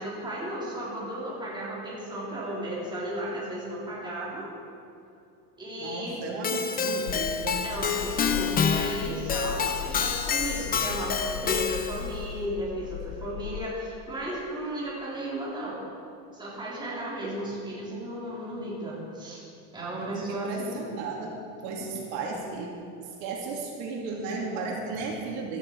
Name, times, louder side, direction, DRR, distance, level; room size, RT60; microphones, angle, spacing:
voice 1, 0.0-4.5 5.6-6.2 7.6-15.8 16.3-19.4 19.7-20.8 21.8-21.9, right 1 dB, 10° right, -6 dB, 3.9 m, -34 dB
voice 2, 5.8-7.6 17.2-17.3 20.0-21.4 21.6-25.6, right 3 dB, 80° right, -1 dB, 3.0 m, -34 dB
Keyboard (musical), 6.4-12.1, left 6 dB, 20° left, 0.7 m, -28 dB
sound 1, 7.1-13.7, left 10 dB, 75° left, 0.7 m, -38 dB
17.0 x 13.5 x 4.8 m, 2.6 s
cardioid pair, 160°, 41 cm